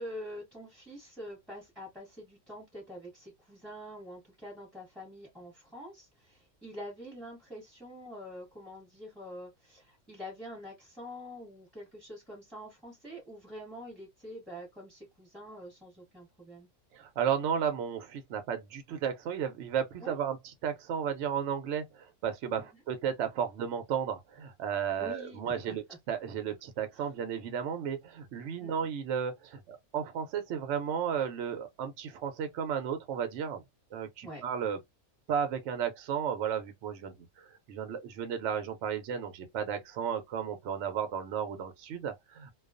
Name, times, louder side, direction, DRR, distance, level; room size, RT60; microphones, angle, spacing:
voice 1, 0.0-16.7 20.0-20.1 22.6-22.7 25.0-25.8 27.0-27.1 28.6-28.8 34.2-34.4, equal, ahead, 0.8 m, -46 dB
voice 2, 16.9-33.6 33.9-34.8 35.3-42.5, right 8 dB, 70° right, 0.7 m, -34 dB
2.3 x 2.3 x 2.4 m
omnidirectional pair, 1.6 m